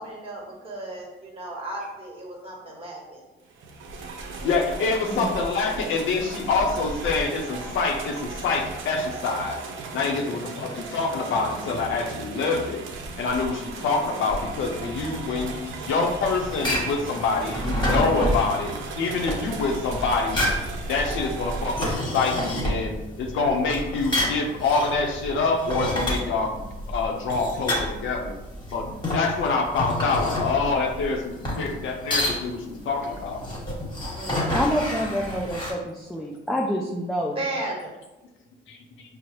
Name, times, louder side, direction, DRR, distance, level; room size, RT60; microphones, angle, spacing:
voice 1, 0.0-3.2 10.4-10.6 34.1-34.6 37.3-37.9, right 1 dB, 30° right, -2 dB, 1.2 m, -35 dB
sound 1, 3.5-21.9, right 3 dB, 75° right, 0.6 m, -36 dB
voice 2, 4.4-9.6 9.9-12.8 13.2-15.5 15.8-20.4 20.9-28.3 28.7-33.4, left 4 dB, 80° left, 3 dB, 0.6 m, -26 dB
sound 2, 16.4-35.7, left 1 dB, 20° left, 1.3 m, -29 dB
voice 3, 34.5-37.4, equal, ahead, -1 dB, 0.4 m, -27 dB
4.6 x 2.0 x 2.9 m, 1.0 s
cardioid pair, 90°, 20 cm